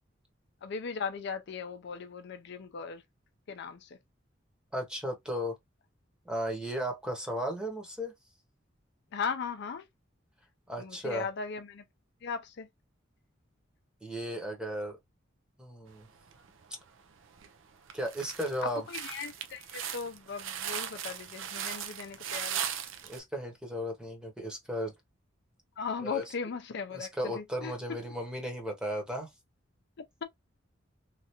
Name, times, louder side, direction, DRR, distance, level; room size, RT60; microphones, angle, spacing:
voice 1, 0.6-3.0 3.5-3.9 9.1-9.8 10.8-11.8 12.2-12.7 18.9-22.6 25.8-27.7, left 5 dB, 60° left, 0.5 m, -37 dB
voice 2, 4.7-5.5 6.2-8.1 10.7-11.3 14.0-15.0 15.6-16.1 17.9-18.9 23.0-24.9 26.0-26.3 26.9-29.3, equal, 5° right, 0.9 m, -35 dB
sound 1, 16.3-16.9 17.4-17.5 17.9-23.2, right 9 dB, 75° right, 0.5 m, -38 dB
3.2 x 2.4 x 2.8 m
head